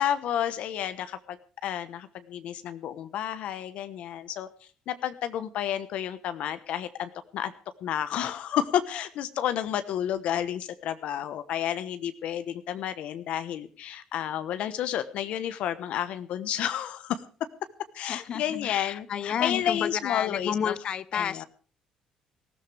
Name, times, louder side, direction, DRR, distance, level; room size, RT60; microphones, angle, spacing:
voice 1, 0.0-4.5 4.9-7.5 7.8-17.2 17.9-20.8 21.1-21.4, left 10 dB, 70° left, 1.1 m, -31 dB
voice 2, 18.1-21.4, left 8 dB, 50° left, 0.8 m, -31 dB
19.5 x 15.0 x 3.4 m
cardioid pair, 140°, 2 cm